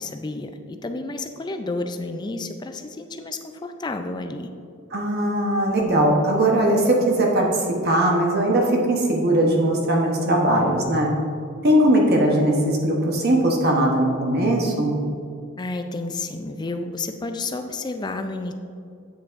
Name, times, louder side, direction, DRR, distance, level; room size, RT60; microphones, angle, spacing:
voice 1, 0.0-4.5 15.6-18.5, left 3 dB, 20° left, 7 dB, 0.4 m, -31 dB
voice 2, 4.9-11.1 11.6-15.0, right 1 dB, 45° right, -1 dB, 0.9 m, -20 dB
8.4 x 7.3 x 2.5 m, 2.5 s
head